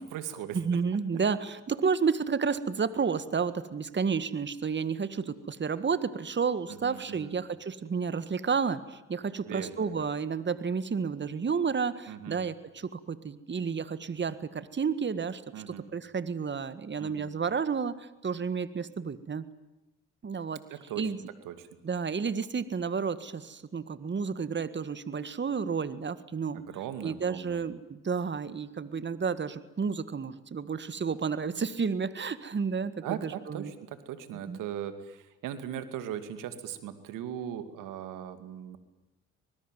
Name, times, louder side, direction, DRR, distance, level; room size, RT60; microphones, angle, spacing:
voice 1, 0.0-0.8 6.7-7.4 9.5-10.1 12.1-12.4 15.5-15.9 17.0-17.3 20.7-21.1 21.4-21.7 26.5-27.6 33.0-38.8, right 10 dB, 80° right, 10 dB, 2.7 m, -39 dB
voice 2, 0.5-15.4 15.7-19.5 20.2-20.6 21.0-21.2 21.8-26.6 27.0-33.7 34.5-34.6, right 5 dB, 35° right, 14 dB, 1.8 m, -31 dB
25.0 x 21.0 x 9.4 m, 0.99 s
supercardioid pair, 60°, 32 cm